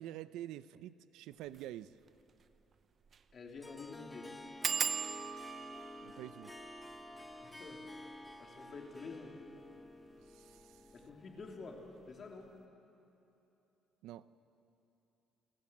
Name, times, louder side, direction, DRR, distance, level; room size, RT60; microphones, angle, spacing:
voice 1, 0.0-1.9 6.0-6.5 10.3-10.8 14.0-14.3, right 13 dB, 85° right, 15 dB, 0.7 m, -47 dB
sound 1, 1.5-1.7 2.1-2.2 2.4-2.5 3.0-3.3 3.6-3.7 4.6-9.9 10.6-11.1 11.4-11.8 12.0-12.1, right 6 dB, 35° right, 0.8 m, -41 dB
voice 2, 3.3-4.3 7.1-9.3 10.9-11.8 12.1-12.5, left 4 dB, 30° left, 0 dB, 3.4 m, -49 dB
Harp, 3.6-12.0, left 2 dB, 10° left, 0.9 m, -51 dB
29.0 x 21.5 x 7.4 m, 3.0 s
cardioid pair, 155°, 0 cm